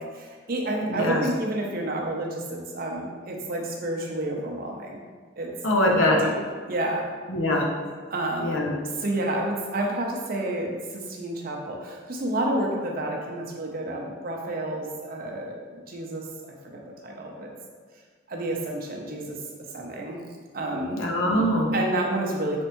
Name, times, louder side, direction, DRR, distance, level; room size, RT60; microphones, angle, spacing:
voice 1, 0.0-5.0 5.4-5.5 6.2-6.4 6.7-7.0 8.1-8.6 8.9-16.2 16.6-17.5 18.3-19.4 19.7-20.2 20.5-21.0 21.7-22.6, right 1 dB, 50° right, 0 dB, 0.6 m, -30 dB
voice 2, 0.8-1.2 5.6-6.2 7.3-7.7 8.4-8.7 21.0-21.7, left 1 dB, 90° left, 0 dB, 0.7 m, -22 dB
4.3 x 3.2 x 2.9 m, 1.6 s
head